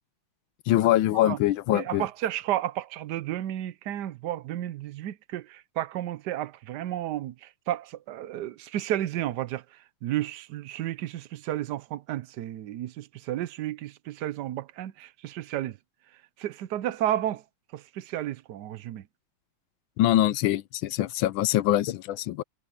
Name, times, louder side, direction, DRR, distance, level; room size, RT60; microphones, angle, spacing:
voice 1, 0.7-2.1 20.0-22.4, left 13 dB, 75° left, 1.3 m, -23 dB
voice 2, 1.7-9.6 10.0-15.8 16.4-17.4 17.7-19.0, right 13 dB, 65° right, 1.1 m, -32 dB
omnidirectional pair, 2.3 m